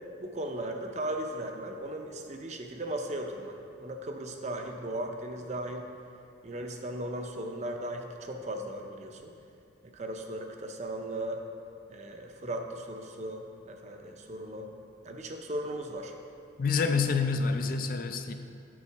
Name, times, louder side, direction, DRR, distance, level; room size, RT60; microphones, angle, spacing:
voice 1, 0.2-5.9 6.4-9.3 9.9-11.4 11.9-14.7 15.0-16.1, right 1 dB, 35° right, 3 dB, 0.6 m, -37 dB
voice 2, 16.6-18.3, left 5 dB, 50° left, 7 dB, 0.4 m, -27 dB
8.6 x 6.1 x 4.6 m, 2.6 s
head